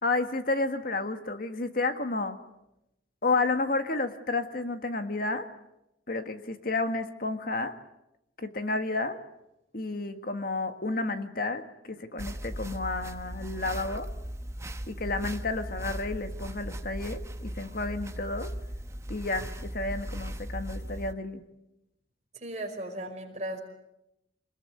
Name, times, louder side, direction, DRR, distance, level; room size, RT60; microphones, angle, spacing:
voice 1, 0.0-2.4 3.2-5.5 6.1-7.8 8.4-9.2 9.7-14.1 14.9-18.5 19.1-21.4, left 3 dB, 50° left, 8 dB, 1.7 m, -31 dB
sound 1, 12.2-21.1, equal, 15° right, 1.0 m, -38 dB
voice 2, 22.3-23.6, right 1 dB, 35° right, 3 dB, 5.0 m, -36 dB
26.0 x 21.0 x 9.4 m, 0.89 s
head